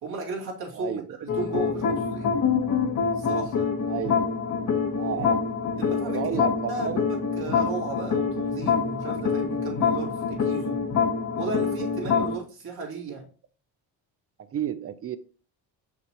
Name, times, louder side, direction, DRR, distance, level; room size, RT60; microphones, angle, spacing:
voice 1, 0.0-2.4 3.2-3.8 5.1-5.3 5.8-6.3 6.7-10.8 11.4-13.3, right 4 dB, 65° right, 2.4 m, -35 dB
sound 1, 1.3-12.4, left 6 dB, 45° left, 1.2 m, -26 dB
voice 2, 3.9-4.2 5.0-5.4 6.0-7.0 14.5-15.2, right 9 dB, 35° right, 0.6 m, -31 dB
5.9 x 5.9 x 2.9 m
cardioid pair, 110°, 40 cm